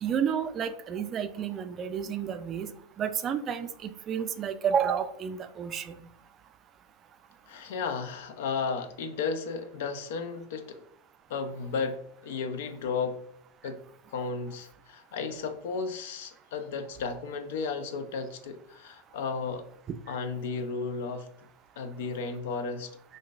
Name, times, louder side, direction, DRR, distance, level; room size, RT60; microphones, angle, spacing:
voice 1, 0.0-2.7 3.0-5.9, right 8 dB, 35° right, 9 dB, 0.3 m, -30 dB
voice 2, 7.5-10.8 11.3-13.2 13.6-13.8 14.1-19.6 20.1-21.3 21.8-22.9, left 5 dB, 70° left, 9 dB, 0.4 m, -34 dB
3.7 x 2.5 x 2.4 m, 0.70 s
hypercardioid pair, 105°, 0 cm